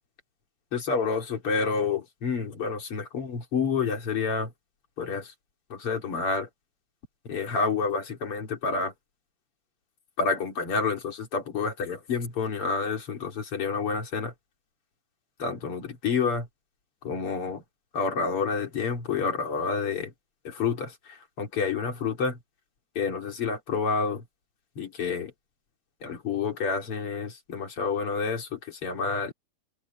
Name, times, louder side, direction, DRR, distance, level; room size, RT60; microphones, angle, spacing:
voice 1, 0.7-4.5 5.0-5.3 5.7-6.5 7.3-8.9 10.2-14.3 15.4-16.5 17.0-17.6 17.9-20.1 20.5-22.4 23.0-24.2 24.8-25.3 26.0-29.3, left 5 dB, 45° left, 3.5 m, -29 dB
open air
omnidirectional pair, 3.6 m